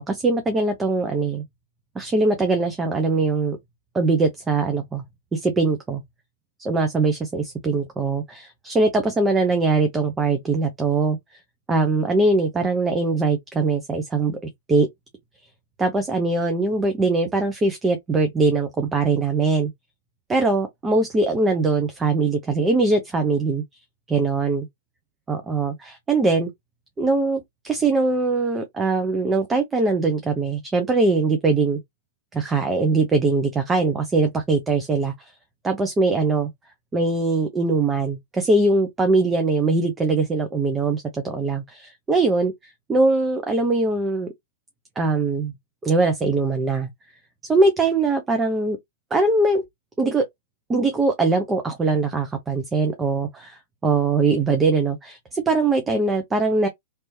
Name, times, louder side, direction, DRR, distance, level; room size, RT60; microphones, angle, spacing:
voice 1, 0.0-1.4 1.9-3.6 3.9-5.0 5.3-6.0 6.6-11.2 11.7-14.4 14.7-14.9 15.8-19.7 20.3-23.6 24.1-24.7 25.3-26.5 27.0-31.8 32.3-35.3 35.6-36.5 36.9-44.3 45.0-45.5 45.8-46.9 47.5-48.8 49.1-49.6 50.0-50.2 50.7-56.7, right 3 dB, 15° right, 0.7 m, -21 dB
3.3 x 3.0 x 2.8 m
hypercardioid pair, 115°, 0 cm